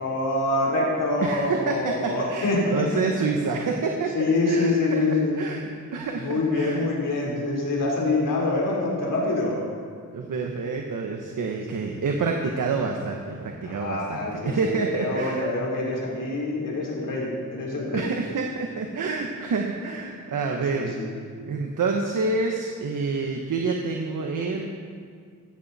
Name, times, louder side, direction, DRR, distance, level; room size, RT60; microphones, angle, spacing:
voice 1, 0.0-3.1 4.1-5.4 6.2-9.6 13.7-18.1 20.7-21.1, left 2 dB, 70° left, -3 dB, 4.0 m, -25 dB
voice 2, 1.2-5.0 5.4-6.9 10.1-14.2 14.4-15.4 17.9-21.0 21.5-24.7, right 4 dB, 70° right, 2 dB, 1.3 m, -28 dB
16.5 x 13.5 x 4.2 m, 2.1 s
wide cardioid pair, 145°, 33 cm